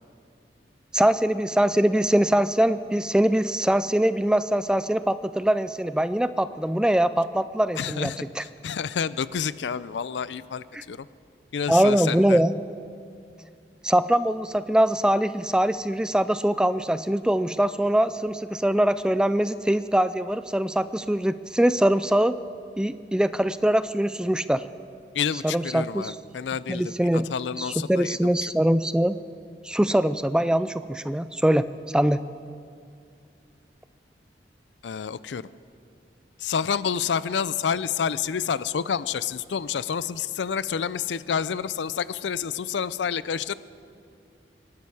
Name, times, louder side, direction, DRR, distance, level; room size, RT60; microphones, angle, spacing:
voice 1, 0.9-8.4 10.7-10.8 11.7-12.5 13.8-22.3 22.8-24.6 25.4-26.1 26.7-27.3 27.6-29.2 29.6-31.7 31.9-32.2, right 1 dB, 5° right, 13 dB, 0.3 m, -22 dB
voice 2, 7.8-11.1 11.5-12.4 25.1-28.5 34.8-35.5 36.4-43.5, left 7 dB, 85° left, 17 dB, 0.5 m, -29 dB
24.5 x 11.5 x 4.8 m, 2.3 s
head